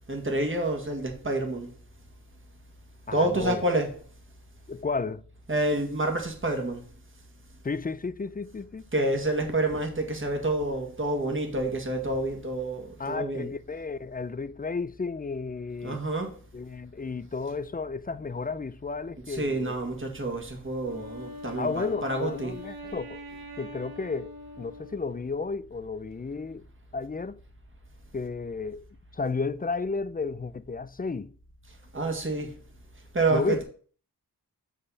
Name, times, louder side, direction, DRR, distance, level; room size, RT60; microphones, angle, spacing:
voice 1, 0.1-1.7 3.1-4.0 5.5-6.8 8.9-13.5 15.8-16.3 19.3-22.6 31.9-32.5 33.1-33.6, right 2 dB, 30° right, 1.9 m, -28 dB
voice 2, 3.1-3.6 4.7-5.2 7.6-8.8 13.0-16.0 16.5-19.8 21.6-23.2 23.6-26.6 26.9-27.4 28.1-28.8 29.1-31.3 33.3-33.6, left 4 dB, 25° left, 0.5 m, -33 dB
Wind instrument woodwind instrument, 20.8-25.5, left 1 dB, 65° right, 1.6 m, -43 dB
6.5 x 5.4 x 5.6 m
cardioid pair, 60°, 39 cm